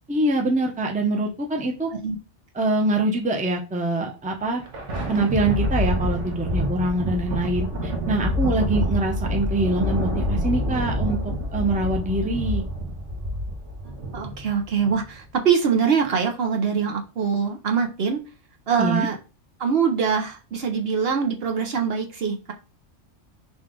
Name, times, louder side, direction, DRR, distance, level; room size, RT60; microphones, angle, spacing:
voice 1, 0.1-1.9 2.5-4.6 5.1-12.6 18.8-19.1, right 2 dB, 10° right, 1 dB, 0.6 m, -24 dB
Thunder, 4.3-15.1, equal, 80° right, 1.2 m, -27 dB
voice 2, 14.1-18.2 18.7-19.2 19.6-22.5, right 6 dB, 60° right, 3 dB, 0.9 m, -23 dB
5.3 x 2.4 x 3.7 m, 0.32 s
omnidirectional pair, 1.2 m